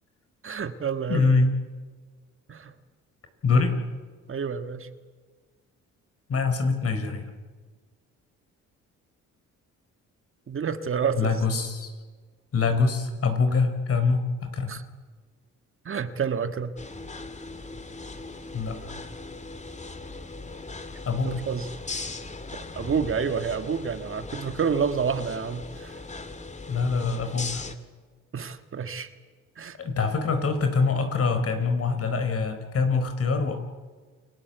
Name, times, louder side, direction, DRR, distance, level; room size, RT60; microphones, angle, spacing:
voice 1, 0.4-1.4 2.5-2.7 4.3-4.9 10.5-11.4 14.7-14.8 15.8-16.7 21.2-21.7 22.5-26.0 28.3-29.1 29.6-29.8, right 6 dB, 45° right, 9 dB, 1.7 m, -29 dB
voice 2, 1.1-1.5 3.4-3.8 6.3-7.2 11.2-11.9 12.5-14.7 18.5-18.8 21.1-21.4 26.7-27.7 29.8-33.6, left 4 dB, 50° left, 8 dB, 4.4 m, -24 dB
sound 1, 16.8-27.8, left 3 dB, 25° left, 2.2 m, -39 dB
29.0 x 19.5 x 8.2 m, 1.5 s
cardioid pair, 90°, 30 cm